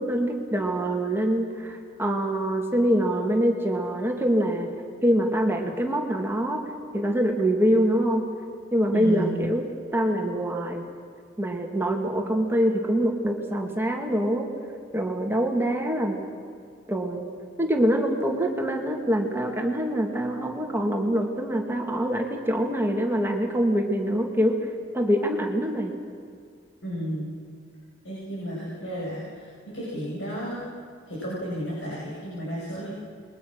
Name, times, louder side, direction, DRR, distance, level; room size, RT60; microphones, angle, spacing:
voice 1, 0.0-4.7 5.0-6.6 6.9-8.3 8.7-9.7 9.9-10.9 11.4-14.5 14.9-16.2 16.9-17.2 17.6-24.6 24.9-26.0, equal, 10° right, 2 dB, 2.3 m, -24 dB
voice 2, 8.9-9.4 26.8-27.3 28.0-29.5 29.7-30.6 31.1-32.9, equal, 70° left, -6 dB, 6.9 m, -32 dB
28.5 x 22.5 x 6.4 m, 2.2 s
head